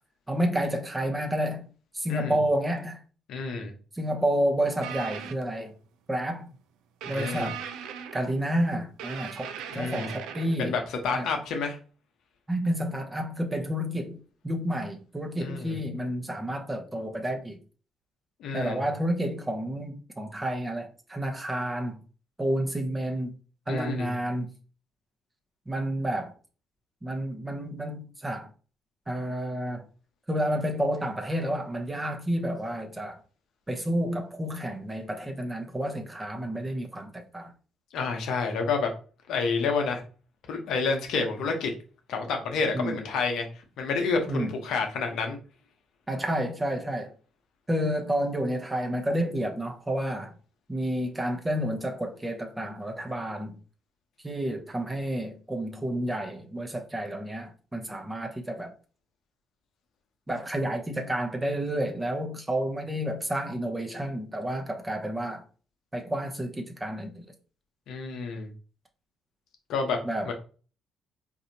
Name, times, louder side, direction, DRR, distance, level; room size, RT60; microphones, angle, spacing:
voice 1, 0.3-1.7 1.9-3.0 3.9-5.7 6.1-6.5 7.1-7.6 8.1-10.7 11.1-11.3 12.5-14.2 14.4-17.6 18.5-22.0 22.4-23.3 23.7-24.5 25.7-26.3 27.0-28.5 29.1-29.8 30.3-33.2 33.7-37.5 42.7-43.0 44.3-44.5 46.1-47.1 47.7-50.3 50.7-53.6 54.2-58.7 60.3-65.4 65.9-67.3 70.0-70.3, right 1 dB, 15° right, 0.8 m, -30 dB
voice 2, 3.3-3.7 7.0-7.5 9.7-10.1 10.6-11.8 15.4-15.8 18.4-18.8 23.7-24.1 37.9-38.9 39.3-40.0 40.5-41.7 42.1-43.5 43.8-45.4 67.9-68.5 69.7-70.0 70.2-70.3, left 4 dB, 65° left, 0.9 m, -29 dB
sound 1, 4.8-5.4 7.0-8.5 9.0-10.6, right 8 dB, 70° right, 0.3 m, -38 dB
4.1 x 2.7 x 2.8 m
hypercardioid pair, 50°, 0 cm